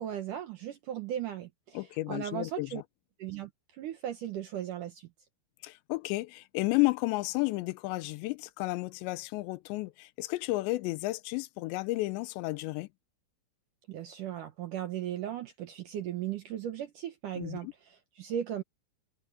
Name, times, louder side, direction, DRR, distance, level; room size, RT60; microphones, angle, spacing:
voice 1, 0.0-2.8 3.2-5.1 13.9-18.6, right 11 dB, 70° right, 2.0 m, -37 dB
voice 2, 1.7-2.8 5.6-12.9 17.4-17.7, left 21 dB, 90° left, 2.9 m, -32 dB
omnidirectional pair, 5.0 m